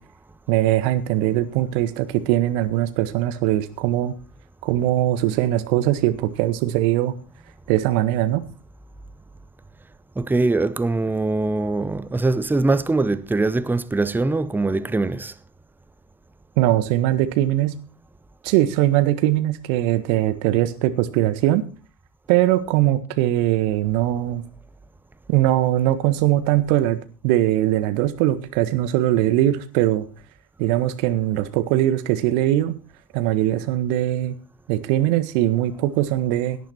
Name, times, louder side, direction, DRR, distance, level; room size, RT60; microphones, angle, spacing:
voice 1, 0.5-4.1 4.6-7.1 7.7-8.4 16.6-17.7 18.4-21.6 22.3-24.4 25.3-27.0 27.2-30.1 30.6-32.8 33.1-34.3 34.7-36.6, right 14 dB, 55° right, 1.6 m, -21 dB
voice 2, 10.2-15.3, right 2 dB, 5° right, 0.6 m, -22 dB
17.5 x 10.0 x 4.4 m
figure-of-eight pair, 70°, 45 cm